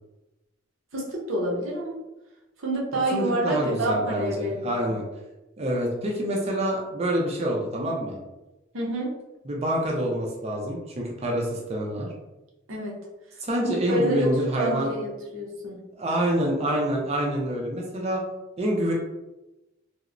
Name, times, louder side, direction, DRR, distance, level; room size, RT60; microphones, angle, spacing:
voice 1, 0.9-2.0 2.6-5.0 8.7-9.1 12.7-13.0 13.9-15.8, right 1 dB, 85° right, -3 dB, 0.7 m, -28 dB
voice 2, 3.1-5.0 5.6-8.2 9.5-12.1 13.4-14.9 16.0-18.2 18.6-18.9, right 1 dB, 30° right, -2 dB, 0.4 m, -26 dB
2.9 x 2.0 x 2.4 m, 1.0 s
head